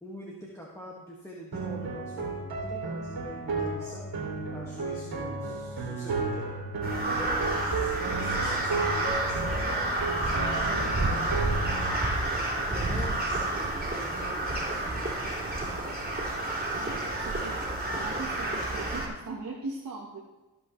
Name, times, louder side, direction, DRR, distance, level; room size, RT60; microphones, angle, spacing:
voice 1, 0.0-4.1 4.5-6.5 7.1-9.9 10.2-12.2 12.6-15.8 17.2-17.3, equal, 5° left, -4 dB, 1.9 m, -45 dB
sound 1, 1.5-12.0, right 3 dB, 70° right, 2.4 m, -33 dB
Crow, 6.8-19.1, right 2 dB, 25° right, 3.2 m, -30 dB
voice 2, 16.8-20.2, right 3 dB, 55° right, -3 dB, 1.4 m, -40 dB
15.5 x 5.4 x 3.2 m, 1.1 s
cardioid pair, 50°, 38 cm